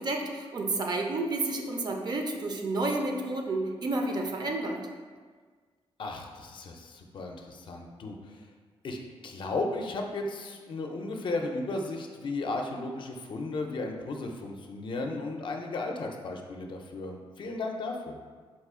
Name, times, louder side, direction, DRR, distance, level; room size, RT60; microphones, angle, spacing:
voice 1, 0.0-4.8, right 2 dB, 45° right, 2 dB, 0.5 m, -30 dB
voice 2, 6.0-8.5 8.8-9.0 9.2-18.2, left 2 dB, 55° left, 2 dB, 0.5 m, -35 dB
4.2 x 2.4 x 3.5 m, 1.5 s
cardioid pair, 100°, 10 cm